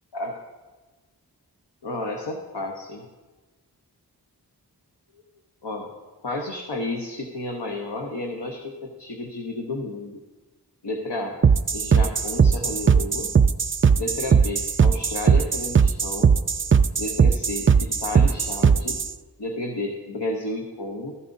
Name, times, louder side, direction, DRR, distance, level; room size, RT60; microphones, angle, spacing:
voice 1, 1.8-3.1 5.6-5.9 6.2-10.2 10.8-11.4 11.7-13.3 14.0-16.3 16.9-19.0 19.4-21.1, left 2 dB, 85° left, 1 dB, 1.1 m, -31 dB
sound 1, 11.4-19.1, right 6 dB, 35° right, 0.4 m, -18 dB
13.5 x 11.5 x 2.7 m, 1.2 s
wide cardioid pair, 50°, 40 cm